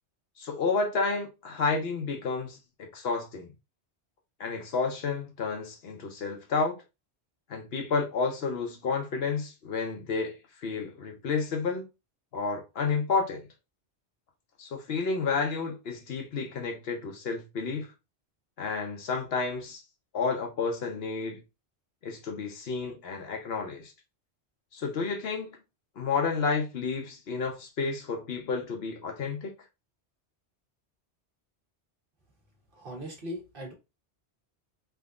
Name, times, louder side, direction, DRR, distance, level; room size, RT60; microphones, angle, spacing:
voice 1, 0.4-3.5 4.4-6.8 7.5-11.8 12.3-13.4 14.6-17.9 18.6-19.8 20.1-21.4 22.0-23.9 24.7-25.6 26.0-29.5, left 4 dB, 65° left, 1.0 m, -31 dB
voice 2, 32.7-33.7, equal, 55° right, 1.3 m, -39 dB
3.5 x 2.7 x 2.3 m
omnidirectional pair, 1.1 m